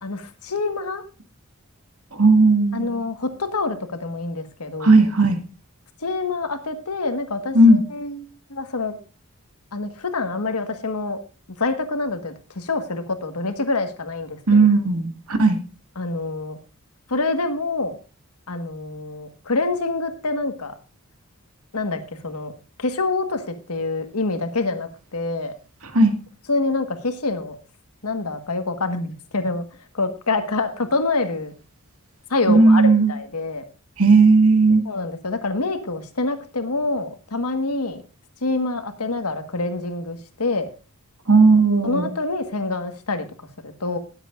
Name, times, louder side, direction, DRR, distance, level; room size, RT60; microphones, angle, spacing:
voice 1, 0.0-1.0 2.7-5.0 6.0-8.9 9.7-11.2 11.6-14.6 16.0-16.6 17.1-18.0 18.5-20.7 21.7-22.5 22.8-25.5 26.5-27.6 28.0-29.6 29.9-31.5 32.3-33.6 34.8-38.0 38.4-40.7 41.8-43.3 43.6-44.0, left 3 dB, 90° left, 8 dB, 1.6 m, -26 dB
voice 2, 2.1-2.9 4.8-5.4 7.5-7.8 14.5-15.6 25.9-26.2 32.5-33.1 34.0-34.8 41.3-42.1, right 3 dB, 80° right, 6 dB, 2.0 m, -15 dB
19.5 x 8.1 x 2.5 m, 0.35 s
head